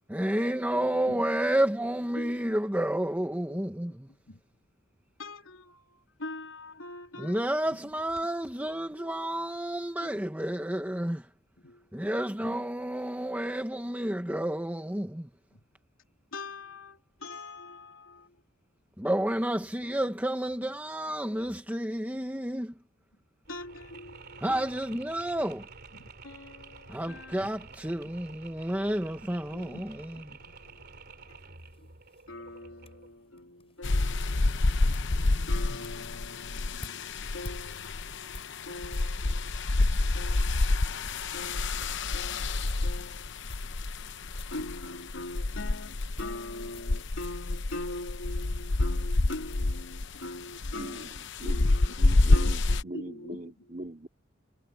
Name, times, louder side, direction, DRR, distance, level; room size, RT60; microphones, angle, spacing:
voice 1, 0.1-4.1 7.2-11.3 11.9-15.3 19.0-22.7 24.4-25.7 26.9-30.4, right 1 dB, 10° right, 1.4 m, -30 dB
voice 2, 0.7-1.3 2.2-2.5 3.5-3.6 4.1-4.4 5.2-7.8 8.6-9.3 10.0-10.1 11.6-11.9 12.4-12.7 15.5-15.6 16.3-18.4 19.6-19.7 20.0-20.1 23.5-25.0 25.9-27.7 29.5-30.9 31.3-31.4 31.8-31.9 32.3-34.5 34.9-35.0 35.5-39.7 40.1-40.6 41.3-43.3 44.5-51.1 51.4-52.0 52.3-53.7, left 2 dB, 85° left, 3.6 m, -43 dB
Mechanisms, 23.4-33.2, right 4 dB, 55° right, 3.0 m, -50 dB
sound 1, 30.6-39.2 40.0-40.1 40.5-40.6 40.9-43.0 43.5-44.1 44.4-44.7 45.6-48.5 48.7-49.3, left 1 dB, 30° left, 7.0 m, -49 dB
sound 2, 33.8-52.8, left 2 dB, 65° left, 0.9 m, -28 dB
voice 3, 50.8-51.1 51.4-54.1, right 1 dB, 40° right, 2.6 m, -41 dB
head